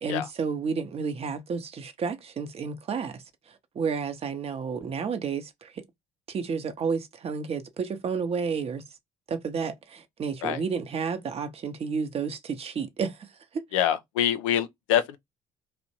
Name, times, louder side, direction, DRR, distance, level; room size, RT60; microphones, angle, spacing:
voice 1, 0.0-3.2 3.7-5.8 6.3-8.8 9.3-13.2 13.5-13.6, right 5 dB, 40° right, 0.7 m, -31 dB
voice 2, 13.7-15.2, left 10 dB, 85° left, 0.4 m, -25 dB
2.6 x 2.1 x 2.7 m
hypercardioid pair, 65°, 16 cm